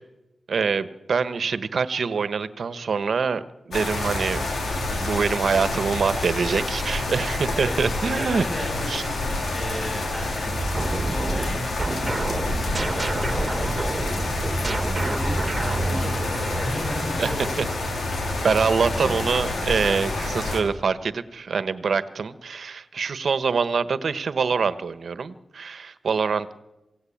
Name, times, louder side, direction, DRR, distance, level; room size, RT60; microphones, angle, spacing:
voice 1, 0.5-3.4 3.7-4.4 4.9-8.5 8.9-9.0 17.2-17.7 18.4-26.6, right 5 dB, 70° right, 13 dB, 1.3 m, -25 dB
sound 1, 3.7-20.6, left 2 dB, 80° left, 4.5 m, -28 dB
voice 2, 7.5-14.5 14.9-17.6 18.8-19.2, equal, 10° left, 0 dB, 7.8 m, -35 dB
sound 2, 10.6-16.8, right 3 dB, 35° right, 1.7 m, -30 dB
27.5 x 17.5 x 8.7 m, 1.0 s
wide cardioid pair, 75°, 0 cm